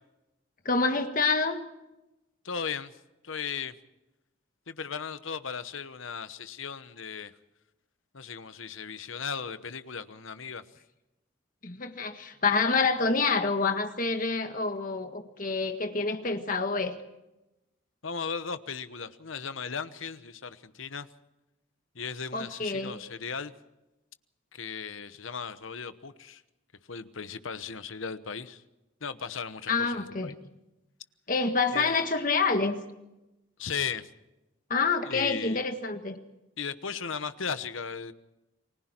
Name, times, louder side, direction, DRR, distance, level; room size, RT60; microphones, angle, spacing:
voice 1, 0.7-1.6 11.6-17.0 22.3-23.0 29.7-30.3 31.3-32.8 34.7-36.2, left 4 dB, 40° left, 6 dB, 1.7 m, -27 dB
voice 2, 2.4-3.0 3.2-3.8 4.7-7.3 8.1-10.6 18.0-21.1 21.9-23.5 24.5-26.4 26.9-28.6 29.0-30.4 31.7-32.0 33.6-34.1 35.0-35.6 36.6-38.1, left 6 dB, 85° left, 12 dB, 1.1 m, -36 dB
29.5 x 20.5 x 4.5 m, 0.96 s
head